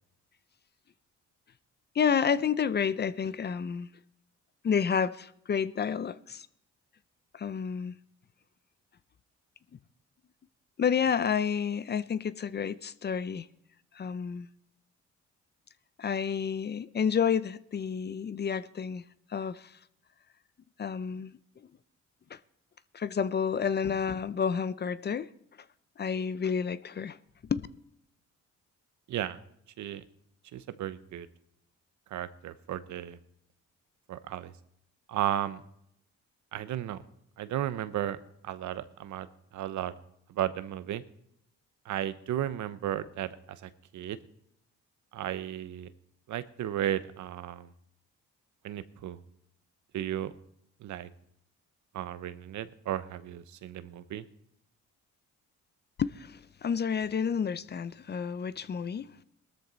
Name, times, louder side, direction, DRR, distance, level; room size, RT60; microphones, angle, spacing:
voice 1, 1.9-3.9 4.6-6.5 7.3-7.9 10.8-13.5 13.9-14.5 16.0-19.0 19.3-19.7 20.8-21.3 22.3-22.4 22.9-25.3 26.0-27.2 27.5-27.7 56.0-59.2, left 7 dB, 35° left, 0.5 m, -30 dB
voice 2, 29.1-29.4 29.8-30.0 30.5-31.3 32.1-33.2 34.1-34.5 35.1-35.6 36.5-37.0 37.4-39.3 39.5-39.9 40.3-41.0 41.8-44.2 45.1-45.9 46.3-47.7 48.6-49.2 49.9-50.3 50.8-51.1 51.9-54.2, right 11 dB, 75° right, 0.8 m, -34 dB
18.5 x 13.0 x 4.0 m
cardioid pair, 90°, 30 cm